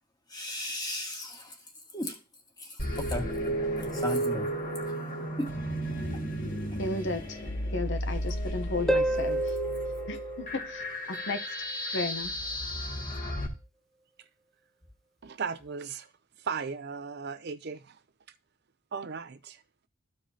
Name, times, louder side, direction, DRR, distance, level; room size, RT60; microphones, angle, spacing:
voice 1, 0.3-1.6 1.9-2.2 2.6-3.3 3.9-4.5 5.4-5.5, left 1 dB, 20° left, 1.8 m, -35 dB
sound 1, 2.8-13.5, right 1 dB, 40° left, 2.0 m, -33 dB
voice 2, 6.8-7.4 7.7-9.5 10.1-12.3, left 2 dB, 55° left, 0.9 m, -34 dB
Harp, 8.9-11.4 14.9-15.0, right 1 dB, ahead, 0.4 m, -30 dB
voice 3, 15.2-16.1 16.4-18.0 18.9-19.6, right 5 dB, 50° right, 0.5 m, -36 dB
14.0 x 4.8 x 2.8 m
head